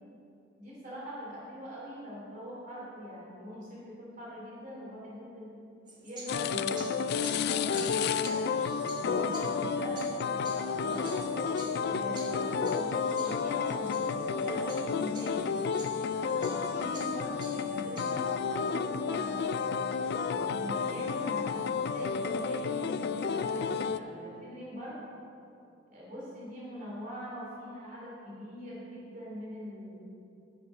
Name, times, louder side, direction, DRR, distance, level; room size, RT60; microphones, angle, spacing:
voice 1, 0.6-5.5 6.0-8.4 8.9-11.2 11.9-15.5 16.1-19.9 20.5-25.0 25.9-30.0, equal, 40° right, -6 dB, 2.9 m, -43 dB
sound 1, 5.9-18.4, right 2 dB, 20° right, 1.4 m, -49 dB
sound 2, 6.3-24.0, left 5 dB, 55° left, 0.3 m, -31 dB
sound 3, 9.0-22.5, equal, 65° right, 1.4 m, -48 dB
9.7 x 7.0 x 6.4 m, 2.7 s
head